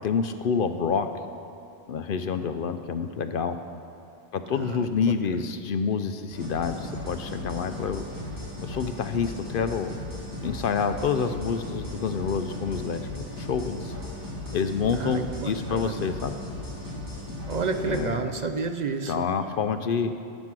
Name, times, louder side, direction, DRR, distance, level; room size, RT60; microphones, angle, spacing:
voice 1, 0.0-1.1 1.9-3.6 4.3-8.0 8.6-9.9 10.4-13.9 14.5-16.3 17.8-18.3 19.1-20.1, left 6 dB, 60° left, 9 dB, 0.7 m, -28 dB
voice 2, 4.5-5.4 14.9-16.1 17.5-19.3, right 4 dB, 50° right, 7 dB, 0.6 m, -31 dB
sound 1, 6.3-18.0, left 1 dB, 20° right, 2.3 m, -36 dB
15.0 x 6.2 x 6.1 m, 2.5 s
omnidirectional pair, 1.1 m